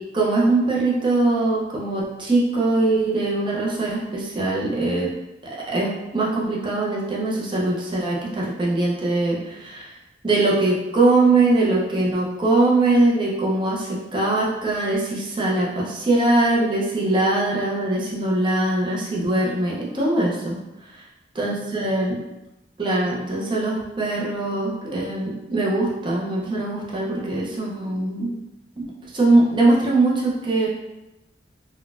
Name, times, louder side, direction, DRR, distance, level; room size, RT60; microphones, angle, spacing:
voice 1, 0.1-5.1 5.7-9.9 10.2-20.6 20.9-21.0 21.4-22.2 22.8-28.3 28.8-28.9 29.1-30.7, right 2 dB, 25° right, -5 dB, 0.5 m, -21 dB
3.9 x 2.2 x 2.3 m, 0.98 s
head